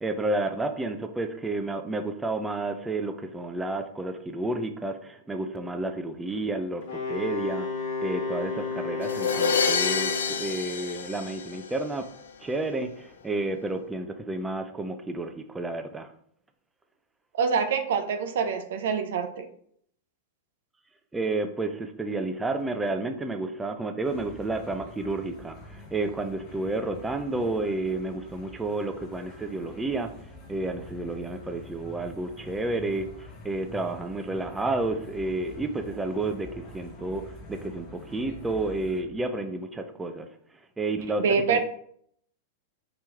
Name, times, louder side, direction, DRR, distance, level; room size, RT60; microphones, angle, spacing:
voice 1, 0.0-12.1 12.4-16.1 21.1-30.1 30.5-40.3 40.8-41.6, right 2 dB, 10° right, 6 dB, 0.4 m, -31 dB
Wind instrument woodwind instrument, 6.8-10.6, left 4 dB, 65° left, 1.4 m, -32 dB
sound 1, 9.0-12.0, left 5 dB, 85° left, 0.4 m, -27 dB
voice 2, 17.3-19.5 41.2-41.6, right 5 dB, 70° right, 8 dB, 0.6 m, -25 dB
sound 2, 24.0-39.0, left 1 dB, 40° left, 0.9 m, -46 dB
4.3 x 3.0 x 3.5 m, 0.66 s
hypercardioid pair, 115°, 0 cm